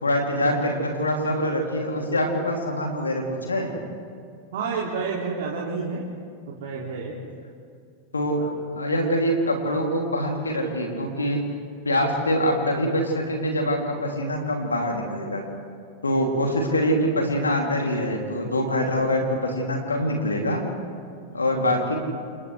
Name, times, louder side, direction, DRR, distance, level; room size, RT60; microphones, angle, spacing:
voice 1, 0.0-3.7 8.1-8.5 8.7-11.4 11.8-15.4 16.0-20.6 21.3-22.0, equal, 75° left, 2 dB, 2.8 m, -24 dB
voice 2, 4.5-6.0 6.5-7.2 8.4-8.5 21.5-21.8, right 5 dB, 55° right, -3 dB, 2.6 m, -30 dB
28.5 x 28.0 x 3.3 m, 2.3 s
figure-of-eight pair, 90°, 0 cm